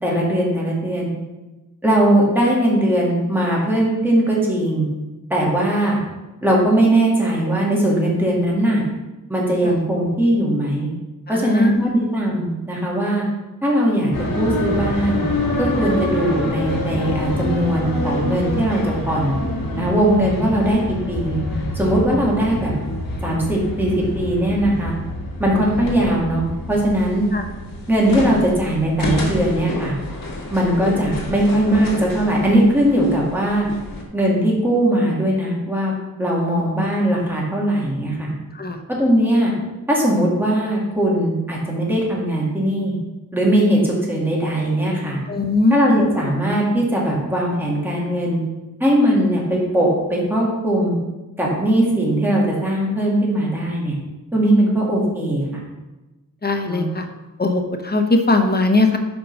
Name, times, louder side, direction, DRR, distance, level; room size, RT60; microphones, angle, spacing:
voice 1, 0.0-1.1 1.8-4.9 5.3-6.0 6.4-8.8 9.3-10.9 11.3-13.2 13.6-15.2 15.6-19.4 19.8-21.4 21.7-22.7 23.2-24.9 25.4-27.3 27.9-30.0 30.5-33.6 34.1-38.3 39.0-39.5 39.9-43.0 43.3-45.2 45.7-48.4 48.8-51.0 51.4-54.0 54.3-55.6 56.7-56.8, right 1 dB, 5° right, -4 dB, 1.9 m, -19 dB
voice 2, 11.3-11.9 27.3-27.4 36.4-36.8 38.5-38.8 45.3-46.0 56.4-57.1 57.4-59.0, left 2 dB, 30° left, 5 dB, 0.8 m, -20 dB
sound 1, 14.1-34.0, left 1 dB, 70° left, 1.6 m, -27 dB
5.3 x 5.0 x 5.9 m, 1.1 s
wide cardioid pair, 120°, 35 cm